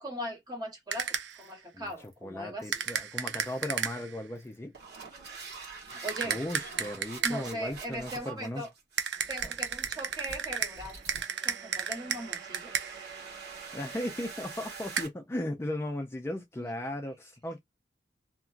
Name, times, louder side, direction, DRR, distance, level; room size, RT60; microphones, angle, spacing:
voice 1, 0.0-2.8 5.9-6.4 7.2-8.7 9.3-11.0 11.4-12.9 16.6-16.7, equal, 25° right, 1.1 m, -39 dB
sound 1, 0.9-1.5 2.7-4.2 6.1-7.6 9.0-13.1 15.0-15.1, right 8 dB, 80° right, 0.5 m, -34 dB
sound 2, 1.3-1.5 1.9-2.1 2.6-2.9 3.5-3.7 4.4-15.1, right 4 dB, 65° right, 1.3 m, -46 dB
voice 2, 2.2-4.7 6.2-8.6 13.7-17.6, left 1 dB, 15° left, 0.4 m, -36 dB
2.8 x 2.4 x 2.4 m
head